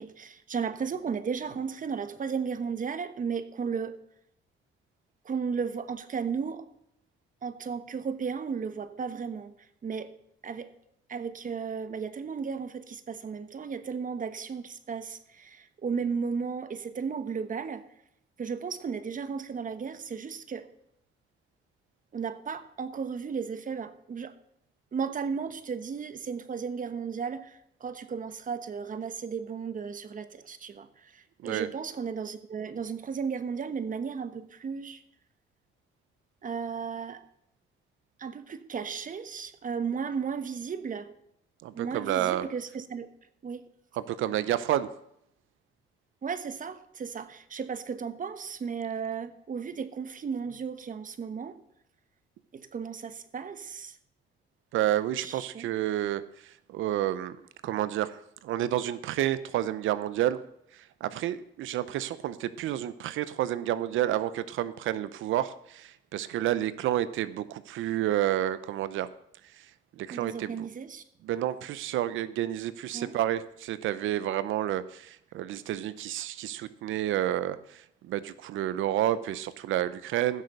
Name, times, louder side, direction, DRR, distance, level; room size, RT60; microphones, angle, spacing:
voice 1, 0.0-4.0 5.2-6.6 7.4-9.5 9.8-10.1 10.4-10.7 11.1-17.8 18.4-20.7 22.1-24.3 24.9-35.0 36.4-37.2 38.2-41.1 41.7-43.1 43.4-43.6 46.2-51.6 52.5-53.9 55.2-55.7 70.1-71.0 72.9-73.1, right 6 dB, 40° right, 11 dB, 1.2 m, -34 dB
voice 2, 41.6-42.5 43.9-44.9 54.7-57.4 57.6-60.4 60.7-69.1 69.5-69.7 70.0-70.7 71.2-80.4, right 12 dB, 80° right, 15 dB, 0.7 m, -30 dB
15.5 x 6.7 x 6.5 m, 0.74 s
cardioid pair, 90°, 20 cm